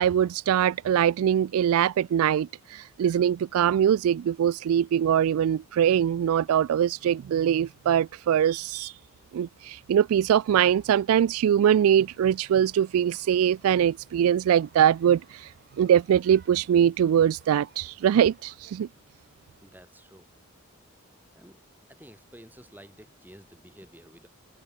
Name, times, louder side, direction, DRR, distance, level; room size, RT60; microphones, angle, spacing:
voice 1, 0.0-8.9 9.3-18.9, right 9 dB, 75° right, 0.3 m, -22 dB
sound 1, 12.0-18.6, right 5 dB, 45° right, 7.2 m, -60 dB
voice 2, 19.6-20.3 21.4-21.6 21.9-24.3, equal, 10° right, 4.1 m, -51 dB
open air
head